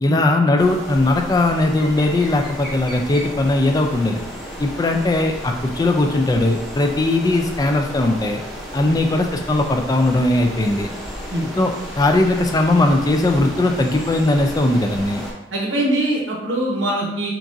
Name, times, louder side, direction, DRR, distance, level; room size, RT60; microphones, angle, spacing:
voice 1, 0.0-4.2 4.6-8.4 8.7-10.9 11.6-15.2, left 2 dB, 20° left, 3 dB, 0.3 m, -19 dB
sound 1, 0.6-15.3, equal, ahead, 0.8 m, -33 dB
voice 2, 15.5-17.3, right 1 dB, 90° right, -3 dB, 1.2 m, -22 dB
5.8 x 2.4 x 2.6 m, 0.88 s
head